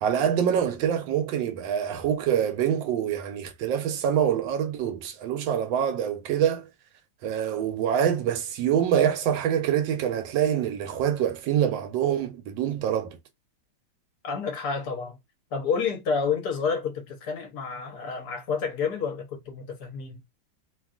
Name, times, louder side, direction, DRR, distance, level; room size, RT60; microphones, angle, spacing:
voice 1, 0.0-6.7 7.2-13.2, right 9 dB, 90° right, 1.3 m, -25 dB
voice 2, 14.2-15.2 15.5-20.2, left 5 dB, 65° left, 1.3 m, -29 dB
3.1 x 2.3 x 2.3 m
omnidirectional pair, 2.0 m